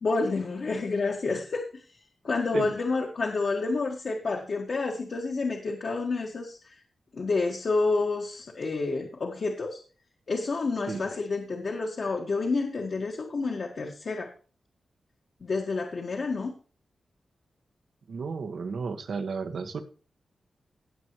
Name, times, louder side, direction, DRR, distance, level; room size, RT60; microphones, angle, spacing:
voice 1, 0.0-1.8 2.2-6.7 7.1-9.8 10.3-14.3 15.4-16.5, left 3 dB, 50° left, 1 dB, 1.7 m, -29 dB
voice 2, 18.1-19.8, right 5 dB, 70° right, 6 dB, 1.6 m, -33 dB
18.0 x 7.4 x 3.2 m, 0.37 s
wide cardioid pair, 140°, 0 cm